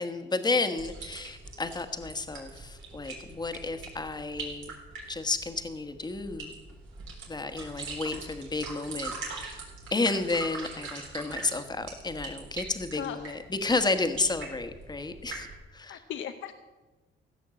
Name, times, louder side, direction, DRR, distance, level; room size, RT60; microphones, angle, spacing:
voice 1, 0.0-4.8 5.1-6.5 7.3-9.6 9.9-15.5 15.7-16.0, left 3 dB, 20° left, 9 dB, 1.2 m, -31 dB
sound 1, 0.8-15.6, right 3 dB, 85° right, 4.0 m, -42 dB
voice 2, 13.0-13.3 15.9-16.5, left 9 dB, 75° left, 9 dB, 0.7 m, -37 dB
16.0 x 6.4 x 7.5 m, 1.2 s
cardioid pair, 90°, 20 cm